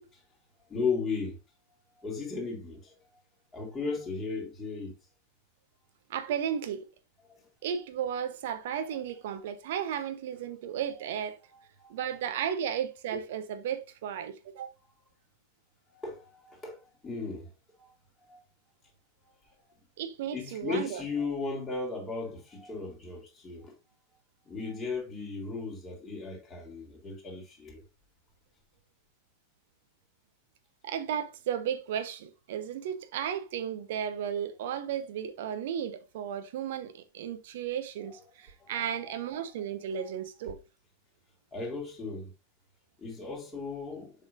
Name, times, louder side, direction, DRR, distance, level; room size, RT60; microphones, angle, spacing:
voice 1, 0.7-1.4 2.0-2.9 3.5-5.0 7.3-7.4 11.5-11.9 15.9-17.5 17.8-17.9 18.3-18.4 20.3-23.7 24.5-27.8 38.6-39.5 41.5-42.3 43.0-44.1, left 4 dB, 15° left, 3.5 m, -36 dB
voice 2, 6.1-6.9 7.6-11.4 11.9-14.7 20.0-21.0 30.8-40.6, right 9 dB, 55° right, 1.0 m, -34 dB
7.3 x 5.6 x 2.6 m
figure-of-eight pair, 90°, 0 cm